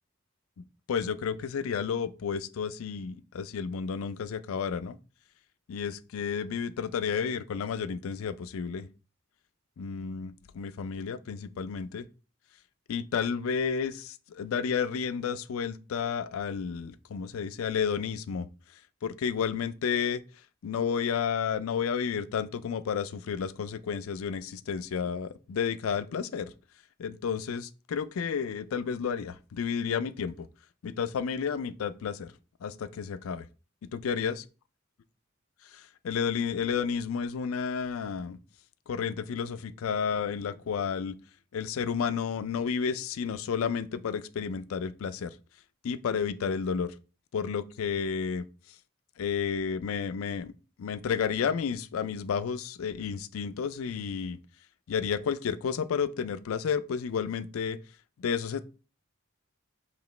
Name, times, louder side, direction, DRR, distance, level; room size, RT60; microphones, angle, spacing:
voice 1, 0.9-5.0 5.7-8.9 9.8-12.0 12.9-18.5 19.0-20.2 20.6-26.5 27.0-30.5 30.8-32.3 32.6-33.5 33.9-34.3 35.7-38.4 38.9-41.1 41.5-45.3 45.8-46.9 47.3-48.5 49.2-50.5 50.8-54.4 54.9-57.8 58.2-58.6, left 6 dB, 85° left, 0.4 m, -31 dB
4.9 x 3.0 x 3.2 m
head